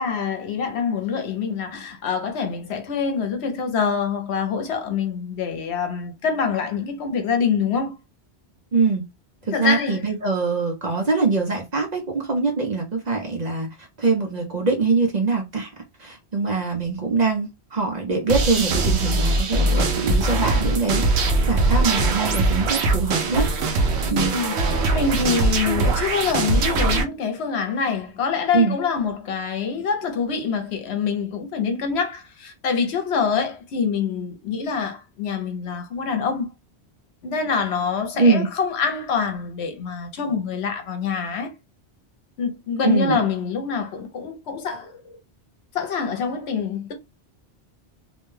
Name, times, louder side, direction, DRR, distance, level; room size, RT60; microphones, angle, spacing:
voice 1, 0.0-7.9 9.5-10.0 24.1-24.6 24.9-36.5 37.2-41.5 42.4-45.2 45.7-46.9, left 6 dB, 75° left, 0.9 m, -25 dB
voice 2, 8.7-9.0 9.5-15.7 16.0-23.5 24.1-24.3 28.5-28.8 38.1-38.5 42.8-43.2, right 4 dB, 45° right, 0.7 m, -23 dB
sound 1, 18.3-27.0, right 2 dB, 75° right, 0.9 m, -21 dB
2.6 x 2.2 x 3.1 m
omnidirectional pair, 1.1 m